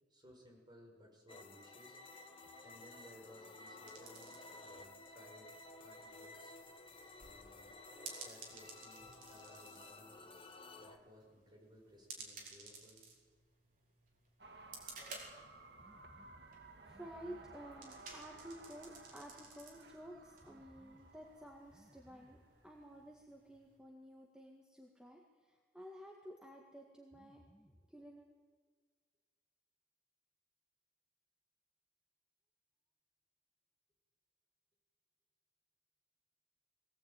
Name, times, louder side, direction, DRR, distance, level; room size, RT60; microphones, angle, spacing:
voice 1, 0.1-2.0 2.6-5.5 5.8-6.5 7.2-7.8 8.2-10.2 10.8-13.0, equal, 25° right, -1 dB, 6.5 m, -60 dB
sound 1, 1.3-11.0, left 2 dB, 30° left, 1.5 m, -54 dB
sound 2, 3.9-23.8, right 4 dB, 50° right, 5.0 m, -57 dB
sound 3, 14.4-23.0, right 3 dB, 75° right, 1.9 m, -58 dB
voice 2, 15.8-16.3 16.9-28.3, equal, 5° right, 0 dB, 1.9 m, -53 dB
22.5 x 18.0 x 9.1 m, 1.5 s
head